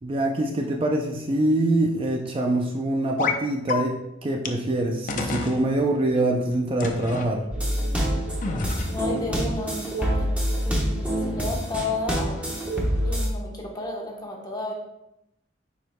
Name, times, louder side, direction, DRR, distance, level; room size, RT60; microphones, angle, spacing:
voice 1, 0.0-4.0 4.2-7.5, right 1 dB, 30° right, 1 dB, 0.5 m, -24 dB
sound 1, 3.2-3.4 3.7-3.8 4.4-4.5 5.1-5.6 6.8-7.3 8.4-9.1, left 4 dB, 45° left, 0.6 m, -28 dB
sound 2, 7.5-13.3, equal, 10° right, 1.1 m, -26 dB
voice 2, 8.9-10.4 10.6-12.3 13.0-14.7, left 2 dB, 20° left, -1 dB, 1.0 m, -32 dB
9.4 x 4.6 x 2.2 m, 0.85 s
head